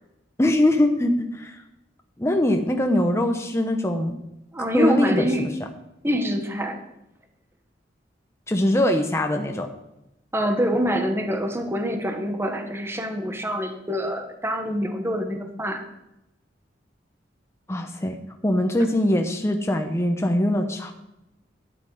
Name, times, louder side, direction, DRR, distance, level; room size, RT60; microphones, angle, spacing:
voice 1, 0.4-1.6 2.2-4.2 4.7-5.3 8.5-9.7 17.7-18.2 18.4-20.9, left 1 dB, 15° left, 4 dB, 0.9 m, -22 dB
voice 2, 4.5-5.5 6.0-6.8 10.3-15.8, equal, 15° right, 5 dB, 1.5 m, -25 dB
12.5 x 10.0 x 5.0 m, 0.88 s
head